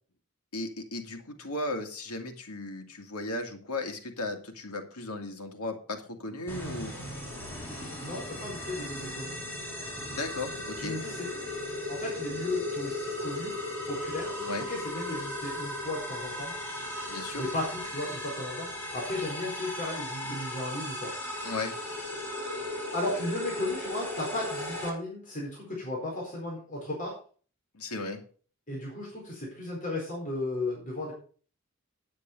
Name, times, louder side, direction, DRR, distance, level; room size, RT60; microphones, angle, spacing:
voice 1, 0.5-6.9 10.1-11.0 14.4-14.7 17.1-17.4 20.3-20.5 21.4-21.8 27.7-28.2, left 2 dB, 90° left, 4 dB, 2.3 m, -36 dB
sound 1, 6.5-24.9, left 1 dB, 10° left, 3.5 m, -36 dB
voice 2, 8.0-9.3 10.8-11.3 11.9-13.5 13.9-14.3 14.7-16.5 17.4-18.7 18.9-21.1 22.9-27.1 28.7-31.1, left 2 dB, 35° left, -3 dB, 4.4 m, -35 dB
9.7 x 8.5 x 5.4 m, 0.41 s
head